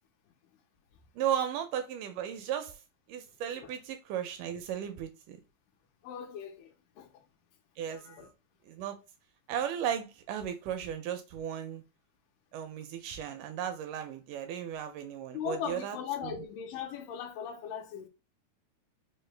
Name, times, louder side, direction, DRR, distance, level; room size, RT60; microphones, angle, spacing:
voice 1, 1.2-2.8 3.1-5.4 7.8-8.3 8.7-9.0 9.5-11.8 12.5-16.0 16.2-16.4, right 9 dB, 80° right, 2.0 m, -35 dB
voice 2, 6.0-7.2 7.9-8.3 15.3-18.1, left 8 dB, 80° left, 2.2 m, -39 dB
5.3 x 2.1 x 3.2 m
omnidirectional pair, 3.9 m